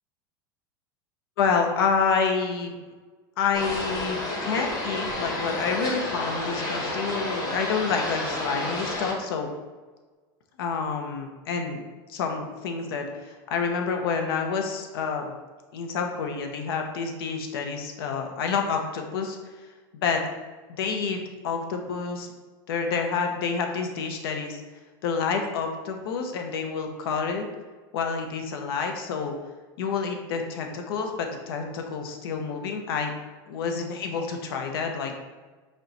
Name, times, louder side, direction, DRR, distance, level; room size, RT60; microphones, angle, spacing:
voice 1, 1.4-2.8 3.4-9.5 10.6-11.8 12.1-15.3 15.7-19.4 19.9-20.2 20.7-22.3 22.7-24.6 25.0-27.4 27.9-29.3 29.8-33.1 33.5-35.1, left 5 dB, 80° left, 4 dB, 0.7 m, -28 dB
sound 1, 3.5-9.1, left 2 dB, 30° left, 1.5 m, -30 dB
5.1 x 2.2 x 4.0 m, 1.3 s
supercardioid pair, 120°, 12 cm